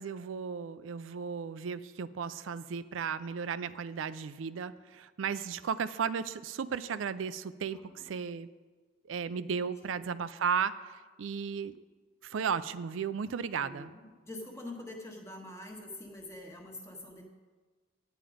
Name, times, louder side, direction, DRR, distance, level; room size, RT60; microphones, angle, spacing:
voice 1, 0.0-8.5 9.0-11.8 12.2-13.9, right 6 dB, 85° right, 14 dB, 0.4 m, -35 dB
voice 2, 7.7-8.1 9.9-10.1 13.6-17.2, left 1 dB, 15° left, 1 dB, 1.3 m, -45 dB
10.5 x 9.0 x 5.0 m, 1.4 s
head